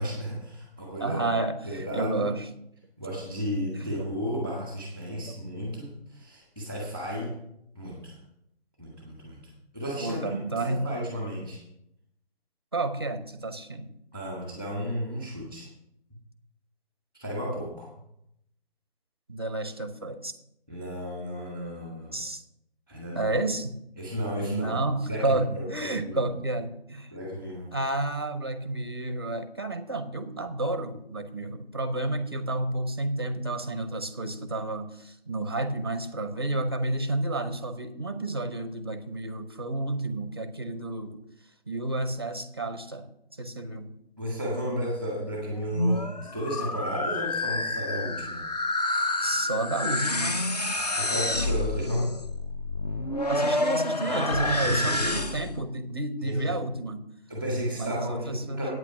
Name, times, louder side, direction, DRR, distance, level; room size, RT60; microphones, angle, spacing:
voice 1, 0.0-1.2 1.6-2.3 3.0-7.3 7.7-8.1 8.8-10.2 10.6-11.6 14.1-15.7 17.1-17.9 20.7-22.2 22.9-23.3 24.0-24.8 25.1-26.3 27.1-27.7 44.2-48.5 50.9-52.1 54.1-55.3 56.2-56.6 57.3-58.7, equal, 10° left, -3 dB, 1.5 m, -33 dB
voice 2, 1.0-2.4 3.8-4.1 4.4-4.5 5.1-5.4 10.0-10.9 12.7-13.9 19.3-20.3 22.1-22.4 23.1-23.8 24.4-27.1 27.7-41.2 41.7-43.9 49.2-50.4 53.3-57.0 57.8-58.7, right 2 dB, 25° right, 9 dB, 0.5 m, -31 dB
sound 1, 45.6-55.6, left 2 dB, 40° left, 0.6 m, -28 dB
8.7 x 8.7 x 5.8 m, 0.79 s
hypercardioid pair, 170°, 32 cm